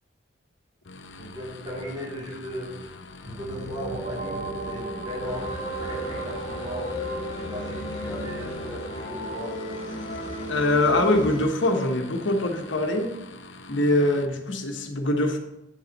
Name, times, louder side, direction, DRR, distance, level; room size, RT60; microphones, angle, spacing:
sound 1, 0.9-14.3, left 2 dB, 75° left, 0.7 m, -44 dB
voice 1, 1.2-2.7 3.3-5.5 5.8-6.9 7.4-9.5, equal, 25° right, -5 dB, 3.1 m, -37 dB
sound 2, 3.2-12.8, right 2 dB, 55° right, 1.7 m, -39 dB
sound 3, 5.2-11.4, left 1 dB, 30° left, 2.8 m, -34 dB
voice 2, 10.5-13.1 13.7-15.4, left 1 dB, 90° left, 3 dB, 1.4 m, -23 dB
8.9 x 7.5 x 4.1 m, 0.95 s
head